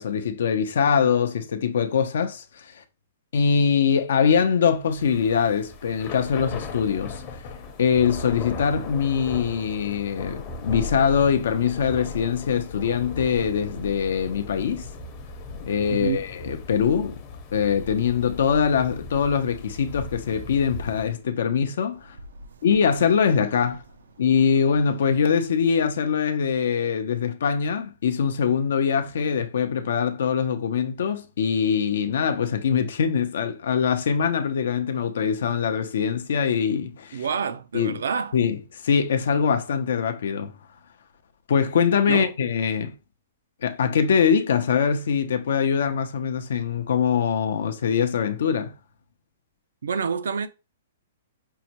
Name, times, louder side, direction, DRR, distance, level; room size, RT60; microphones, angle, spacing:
voice 1, 0.0-2.8 3.3-7.2 7.8-14.9 15.7-17.2 17.5-22.2 22.6-23.8 24.2-37.2 37.7-38.0 38.3-40.5 41.5-42.9 43.6-48.7, left 7 dB, 75° left, 0.6 m, -23 dB
Thunder / Rain, 4.9-21.2, left 3 dB, 35° left, 0.7 m, -37 dB
voice 2, 15.9-16.2 37.1-38.3 42.0-42.3 49.8-50.5, right 6 dB, 85° right, 0.5 m, -27 dB
5.5 x 2.1 x 2.9 m
hypercardioid pair, 150°, 0 cm